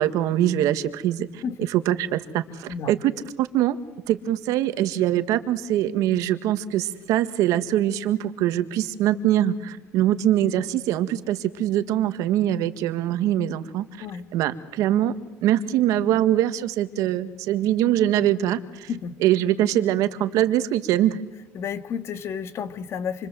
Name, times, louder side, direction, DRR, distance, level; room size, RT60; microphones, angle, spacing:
voice 1, 0.0-1.4 1.7-3.1 3.4-3.8 4.1-14.1 14.3-15.1 15.4-18.9 19.2-21.2, right 12 dB, 80° right, 11 dB, 1.8 m, -23 dB
voice 2, 21.5-23.3, left 7 dB, 50° left, 10 dB, 2.0 m, -31 dB
28.0 x 24.5 x 7.7 m, 1.1 s
cardioid pair, 135°, 6 cm